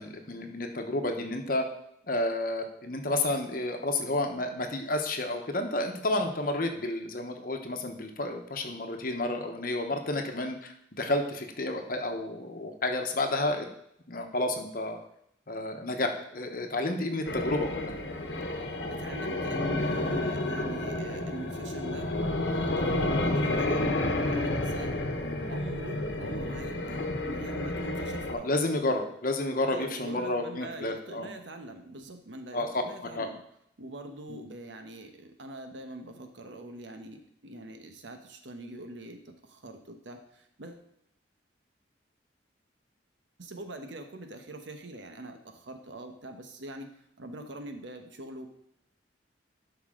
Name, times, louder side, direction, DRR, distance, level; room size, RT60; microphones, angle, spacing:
voice 1, 0.0-1.7 2.1-13.7 14.1-15.0 15.5-18.0 25.2-25.4 28.3-31.3 32.5-32.8 33.2-33.3 34.3-34.5, left 2 dB, 50° left, 4 dB, 1.0 m, -31 dB
sound 1, 17.2-28.3, left 1 dB, 75° left, 1.1 m, -30 dB
voice 2, 18.9-22.1 22.5-24.0 24.3-25.1 25.4-28.5 29.6-33.4 33.8-40.9 43.4-46.9 47.2-48.5, right 1 dB, 85° right, 6 dB, 1.1 m, -43 dB
11.5 x 5.5 x 3.7 m, 0.74 s
head